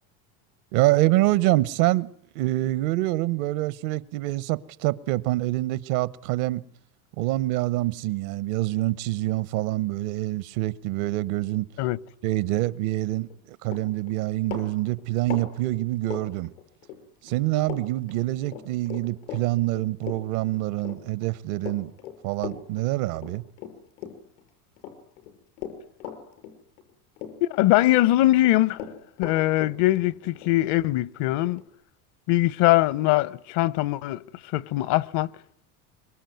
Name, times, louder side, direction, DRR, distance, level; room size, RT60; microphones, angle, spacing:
voice 1, 0.7-6.6 7.2-11.7 12.2-16.5 17.2-21.9 22.2-23.4, right 17 dB, 70° right, 1.1 m, -26 dB
Run, 13.2-13.4 13.6-17.0 17.3-17.8 18.1-24.4 24.8-26.9 27.2-28.1 28.3-31.7, left 10 dB, 85° left, 6.2 m, -39 dB
voice 2, 27.4-28.8 29.2-31.6 32.3-34.2 34.5-35.3, left 16 dB, 65° left, 1.0 m, -22 dB
25.0 x 23.5 x 9.4 m
supercardioid pair, 95°, 43 cm